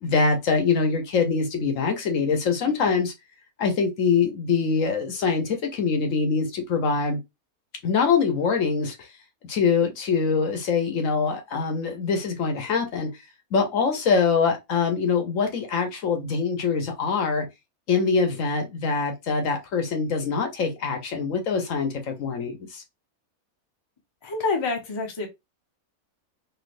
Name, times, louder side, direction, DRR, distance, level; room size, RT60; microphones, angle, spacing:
voice 1, 0.0-3.1 3.6-7.2 7.8-9.1 9.5-13.1 13.5-17.5 17.9-22.8, left 5 dB, 65° left, 1.1 m, -24 dB
voice 2, 24.2-25.3, left 3 dB, 30° left, 0.6 m, -27 dB
3.2 x 2.8 x 2.5 m
omnidirectional pair, 1.5 m